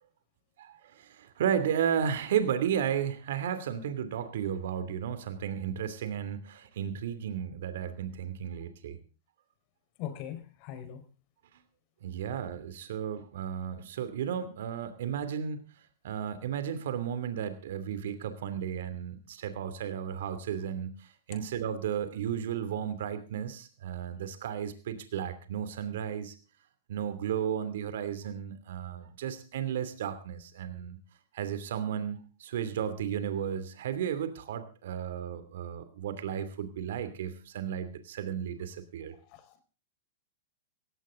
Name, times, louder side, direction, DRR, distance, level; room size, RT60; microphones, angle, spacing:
voice 1, 0.6-9.0 12.0-15.7 16.0-26.3 26.9-31.0 31.3-39.1, right 8 dB, 70° right, 12 dB, 2.8 m, -34 dB
voice 2, 10.0-11.0 39.3-39.6, left 10 dB, 45° left, 9 dB, 4.6 m, -40 dB
17.5 x 15.5 x 3.8 m, 0.35 s
hypercardioid pair, 130°, 0 cm